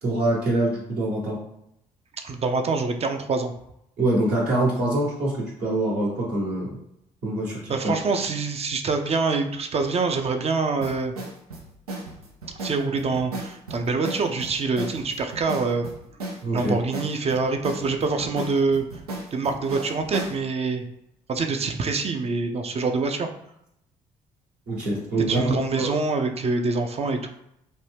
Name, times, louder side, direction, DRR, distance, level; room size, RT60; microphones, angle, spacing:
voice 1, 0.0-1.4 4.0-6.8 7.2-7.7 16.4-16.7 24.7-25.9, right 2 dB, 60° right, -5 dB, 1.2 m, -24 dB
voice 2, 2.2-3.5 7.7-11.1 12.6-15.9 16.5-18.8 19.3-20.8 21.3-23.3 25.3-27.3, right 4 dB, 35° right, 5 dB, 0.5 m, -25 dB
sound 1, 10.8-20.4, right 1 dB, 90° right, 0.5 m, -35 dB
2.6 x 2.2 x 3.3 m, 0.80 s
figure-of-eight pair, 45°, 19 cm